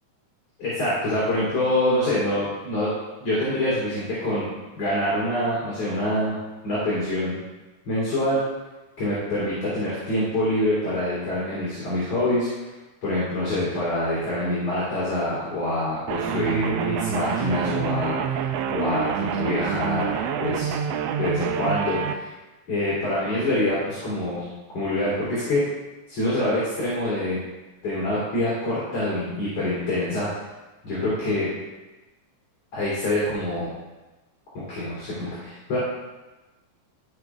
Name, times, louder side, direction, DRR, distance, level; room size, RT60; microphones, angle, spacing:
voice 1, 0.6-2.9 3.2-6.4 6.6-7.4 7.9-8.4 9.0-12.7 13.0-20.8 21.2-22.2 22.7-25.6 26.1-27.4 27.8-30.4 30.8-31.5 32.7-33.7 34.5-35.8, left 1 dB, 55° left, -9 dB, 3.9 m, -25 dB
sound 1, 16.1-22.1, right 8 dB, 85° right, 1.5 m, -27 dB
15.5 x 6.0 x 2.4 m, 1.1 s
omnidirectional pair, 3.4 m